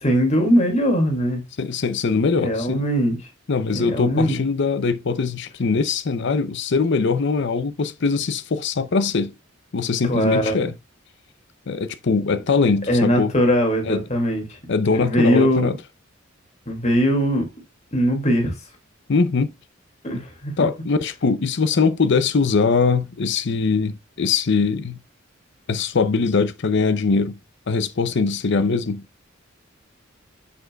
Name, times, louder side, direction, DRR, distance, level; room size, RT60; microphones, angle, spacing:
voice 1, 0.0-1.4 2.4-3.2 3.7-4.4 10.0-10.7 12.9-14.6 14.9-15.7 16.7-17.5 17.9-18.5 20.0-20.5, equal, 35° left, 2.3 m, -20 dB
voice 2, 1.6-2.8 3.5-9.3 9.7-10.7 11.7-13.3 13.9-14.0 14.7-15.8 19.1-19.5 20.1-20.2 20.6-25.0 25.7-27.4 27.7-29.0, left 4 dB, 60° left, 0.6 m, -21 dB
7.2 x 6.4 x 2.3 m
head